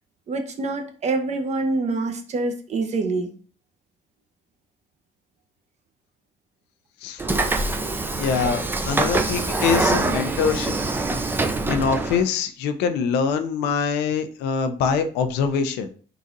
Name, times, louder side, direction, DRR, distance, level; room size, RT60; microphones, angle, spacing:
voice 1, 0.3-3.3, right 3 dB, 40° right, 5 dB, 0.7 m, -26 dB
Train / Sliding door, 7.2-12.2, right 3 dB, 10° right, 0.4 m, -24 dB
voice 2, 8.1-10.8 11.7-15.9, left 6 dB, 90° left, 9 dB, 0.5 m, -24 dB
3.9 x 2.4 x 3.9 m, 0.42 s
cardioid pair, 110°, 17 cm